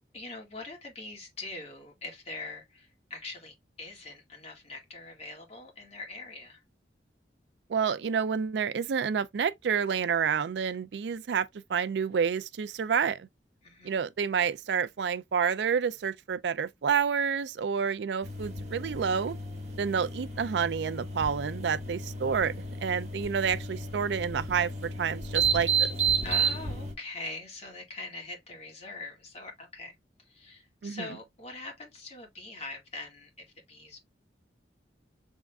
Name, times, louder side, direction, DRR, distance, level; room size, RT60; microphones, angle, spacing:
voice 1, 0.0-6.6 13.6-14.0 26.2-29.9 30.3-34.0, left 3 dB, 40° left, 2.0 m, -43 dB
voice 2, 7.7-13.3 13.8-19.4 19.8-22.5 22.8-26.0 30.8-31.1, right 6 dB, 75° right, 0.4 m, -29 dB
sound 1, 18.2-26.9, right 5 dB, 40° right, 1.6 m, -32 dB
6.2 x 3.6 x 2.3 m
head